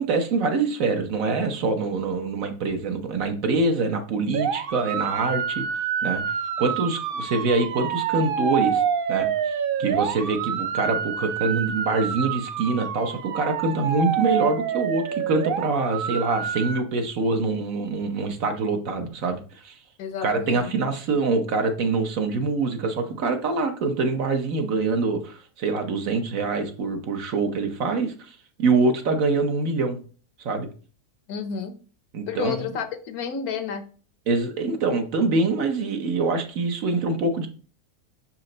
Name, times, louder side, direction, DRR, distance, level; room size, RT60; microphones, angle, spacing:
voice 1, 0.0-5.6 6.0-8.8 9.1-19.8 20.2-30.0 30.4-30.7 32.1-32.7 34.3-37.5, right 3 dB, 65° right, 1.2 m, -25 dB
sound 1, 4.3-16.8, right 7 dB, 85° right, 0.4 m, -27 dB
voice 2, 20.0-20.7 31.3-31.8 32.3-33.9, left 7 dB, 75° left, 1.2 m, -31 dB
6.2 x 4.4 x 3.9 m
omnidirectional pair, 1.6 m